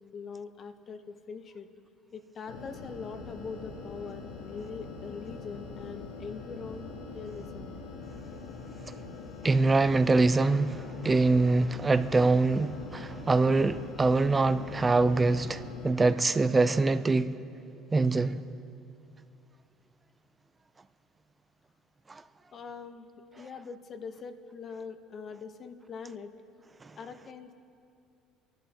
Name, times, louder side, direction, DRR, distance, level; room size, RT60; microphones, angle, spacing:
voice 1, 0.0-1.7 2.1-7.8 22.5-23.1 23.4-26.3 27.0-27.5, left 5 dB, 35° left, 0.9 m, -42 dB
sound 1, 2.5-15.9, left 3 dB, 70° left, 1.8 m, -43 dB
voice 2, 9.4-17.4 17.9-18.4 22.1-22.2 26.8-26.9, right 3 dB, 20° right, 0.4 m, -24 dB
29.0 x 11.5 x 2.9 m
cardioid pair, 125°, 0 cm